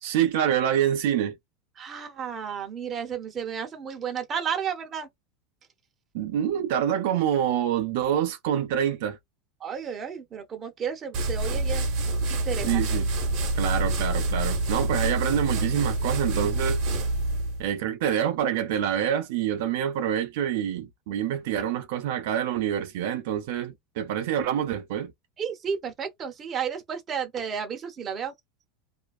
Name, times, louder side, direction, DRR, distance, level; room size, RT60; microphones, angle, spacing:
voice 1, 0.0-1.4 6.1-9.2 12.7-13.1 13.5-16.8 17.6-25.1, right 10 dB, 70° right, 0.5 m, -26 dB
voice 2, 1.8-5.1 9.6-11.9 12.3-12.8 25.4-28.3, right 7 dB, 25° right, 0.7 m, -32 dB
sound 1, 11.1-17.6, right 2 dB, 50° right, 0.9 m, -27 dB
2.4 x 2.2 x 2.3 m
supercardioid pair, 145°, 0 cm